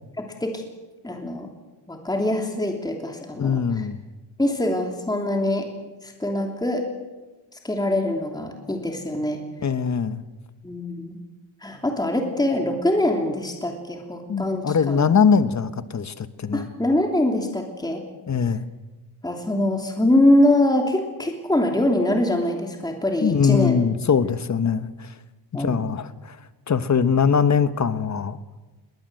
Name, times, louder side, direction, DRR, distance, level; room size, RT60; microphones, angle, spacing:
voice 1, 0.2-0.6 1.0-1.5 1.9-3.9 4.4-5.7 6.0-6.8 7.5-9.4 10.6-11.2 11.6-15.1 16.5-18.0 19.2-23.8 25.5-25.8, left 1 dB, 10° left, 2 dB, 2.9 m, -23 dB
voice 2, 3.4-4.0 9.6-10.2 14.3-16.7 18.3-18.7 23.2-25.1 25.5-26.4 26.7-28.4, left 6 dB, 35° left, 12 dB, 1.2 m, -22 dB
20.5 x 20.0 x 7.9 m, 1.2 s
cardioid pair, 105°, 48 cm